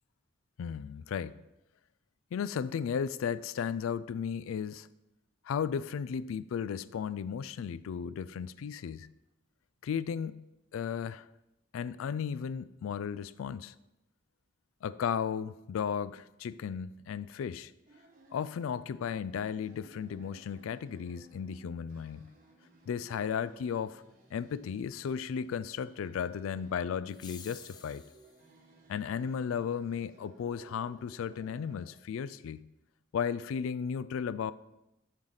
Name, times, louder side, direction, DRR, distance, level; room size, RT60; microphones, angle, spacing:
voice 1, 0.6-1.4 2.3-4.9 5.5-9.1 9.8-10.4 10.7-11.3 11.7-13.7 14.8-17.7 18.3-22.3 22.9-24.0 24.3-28.0 28.9-32.7 33.1-34.5, left 7 dB, 85° left, 16 dB, 0.3 m, -35 dB
sound 1, 17.9-31.9, right 2 dB, 45° right, 1.1 m, -60 dB
sound 2, 27.1-28.4, left 6 dB, 20° left, 0.4 m, -51 dB
7.3 x 3.9 x 6.4 m, 0.91 s
head